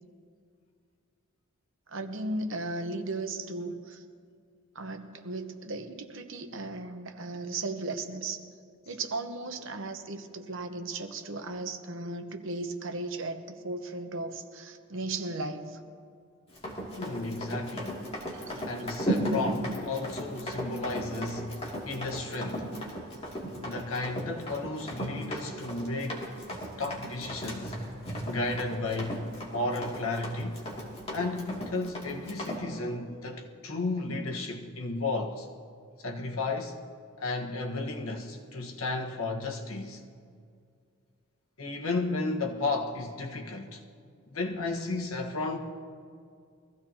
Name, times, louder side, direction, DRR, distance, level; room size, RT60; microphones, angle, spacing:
voice 1, 1.9-4.0 4.7-8.4 8.9-15.8 18.3-18.9, right 2 dB, 65° right, 1.0 m, -36 dB
Run, 16.5-32.6, equal, 30° left, 2.7 m, -36 dB
voice 2, 17.0-18.1 18.6-21.6 21.9-22.7 23.6-26.3 26.8-27.8 28.2-29.2 29.5-30.6 31.1-35.5 36.0-36.8 37.2-40.0 41.6-43.8 44.3-45.6, left 2 dB, 85° left, 1.5 m, -33 dB
23.0 x 15.5 x 2.9 m
head